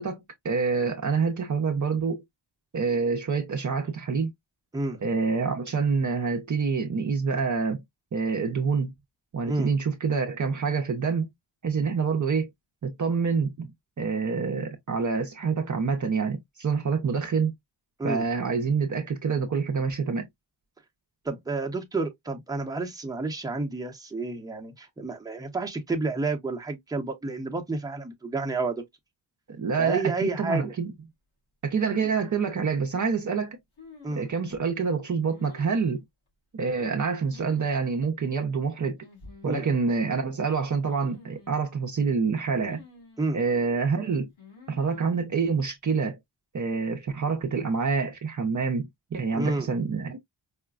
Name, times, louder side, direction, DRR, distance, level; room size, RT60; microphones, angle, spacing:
voice 1, 0.0-2.2 2.7-4.3 5.0-7.8 8.1-8.9 9.3-11.3 11.6-12.5 12.8-13.7 14.0-17.5 18.0-20.3 29.6-30.9 31.6-33.6 34.2-36.0 36.5-39.0 39.4-42.8 43.3-44.3 44.7-46.2 46.5-50.2, right 5 dB, 40° right, 0.6 m, -27 dB
voice 2, 21.2-28.8 29.8-30.7 34.0-34.3 39.4-39.7 43.2-43.4 49.3-49.7, right 3 dB, 10° right, 0.7 m, -30 dB
sound 1, 31.8-32.5 33.8-34.6 35.3-36.0 37.3-37.7 38.0-38.1 39.0-39.7 40.8-41.6 42.6-43.4 44.4-45.1, left 4 dB, 85° left, 2.7 m, -49 dB
4.9 x 2.1 x 2.3 m
wide cardioid pair, 95°, 46 cm